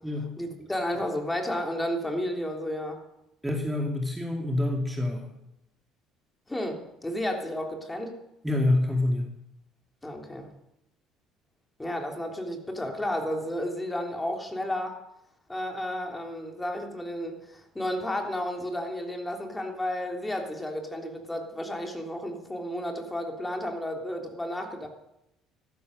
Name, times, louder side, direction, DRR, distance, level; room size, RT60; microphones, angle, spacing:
voice 1, 0.4-3.0 6.5-8.2 10.0-10.5 11.8-15.0 15.5-24.9, left 1 dB, 10° left, 3 dB, 3.4 m, -32 dB
voice 2, 3.4-5.3 8.4-9.3, left 2 dB, 10° right, 1 dB, 2.4 m, -27 dB
14.0 x 12.0 x 6.6 m, 0.87 s
supercardioid pair, 70°, 0 cm